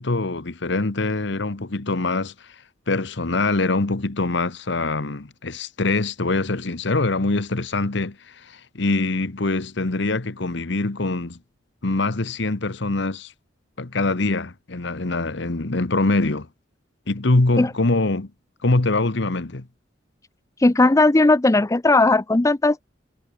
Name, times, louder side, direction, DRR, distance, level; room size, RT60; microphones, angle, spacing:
voice 1, 0.0-2.3 2.9-11.4 11.8-13.3 13.8-16.5 17.1-18.3 18.6-19.7, left 2 dB, 65° left, 1.2 m, -23 dB
voice 2, 20.6-22.8, left 2 dB, 15° left, 0.5 m, -17 dB
head